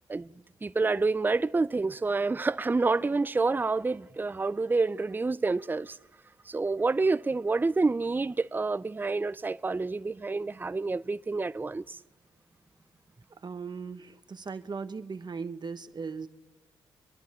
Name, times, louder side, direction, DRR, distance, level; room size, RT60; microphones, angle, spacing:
voice 1, 0.6-6.0 6.5-12.0, right 3 dB, 20° right, 0.5 m, -28 dB
voice 2, 13.4-16.3, right 5 dB, 40° right, 1.2 m, -38 dB
25.0 x 11.5 x 4.3 m
supercardioid pair, 50°, 11 cm